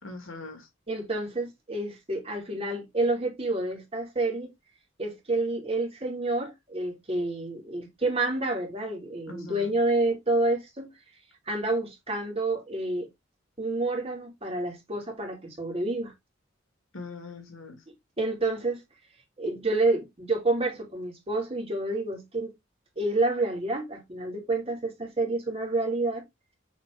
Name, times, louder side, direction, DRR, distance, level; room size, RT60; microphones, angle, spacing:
voice 1, 0.0-0.7 9.3-9.8 16.9-17.8, left 3 dB, 80° left, 2.4 m, -41 dB
voice 2, 0.9-4.5 5.0-10.9 11.5-13.1 13.6-16.1 18.2-18.8 19.4-22.5 23.0-26.2, right 2 dB, 30° right, 2.5 m, -29 dB
7.1 x 3.9 x 3.5 m
head